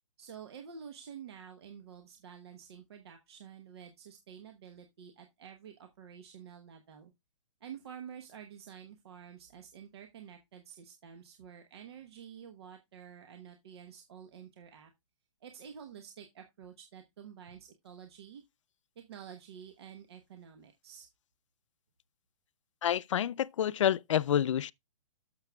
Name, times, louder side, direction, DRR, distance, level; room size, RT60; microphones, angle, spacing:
voice 1, 0.2-7.1 7.6-14.9 15.4-18.4 19.0-21.1, right 8 dB, 50° right, 1.1 m, -49 dB
voice 2, 22.8-24.7, left 10 dB, 65° left, 0.4 m, -28 dB
12.5 x 6.7 x 2.3 m
hypercardioid pair, 170°, 17 cm